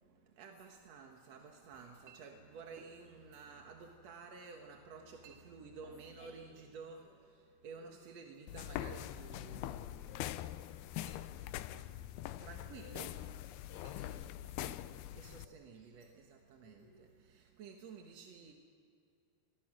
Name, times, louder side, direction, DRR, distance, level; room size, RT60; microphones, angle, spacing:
voice 1, 0.0-10.2 11.1-11.7 12.4-13.2 15.2-18.5, right 5 dB, 55° right, 2 dB, 2.1 m, -53 dB
Chink clink, 0.6-16.1, right 6 dB, 75° right, 3.7 m, -66 dB
voice 2, 5.7-6.7 7.0-7.2 7.8-8.1 13.5-15.6 16.6-17.1, left 3 dB, 60° left, -4 dB, 5.6 m, -63 dB
sound 1, 8.5-15.5, left 13 dB, 85° left, 2.6 m, -43 dB
27.5 x 22.0 x 6.2 m, 2.5 s
omnidirectional pair, 4.5 m